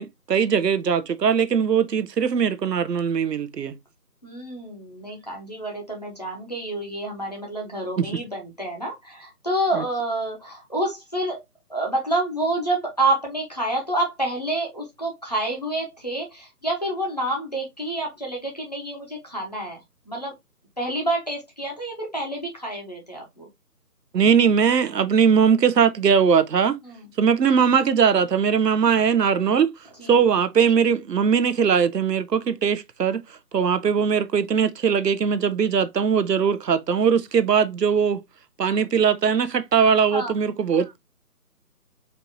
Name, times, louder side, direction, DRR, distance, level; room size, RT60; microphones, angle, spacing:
voice 1, 0.0-3.7 8.0-8.1 9.7-9.8 24.1-26.8 27.2-29.7 30.1-33.2 33.5-38.2 38.6-41.0, right 7 dB, 90° right, 0.7 m, -20 dB
voice 2, 4.2-11.4 11.7-19.8 20.1-20.3 20.8-23.5 26.8-27.1 30.0-30.2 40.1-40.3, right 1 dB, 25° left, 0.9 m, -28 dB
4.5 x 2.9 x 2.6 m
figure-of-eight pair, 170°, 47 cm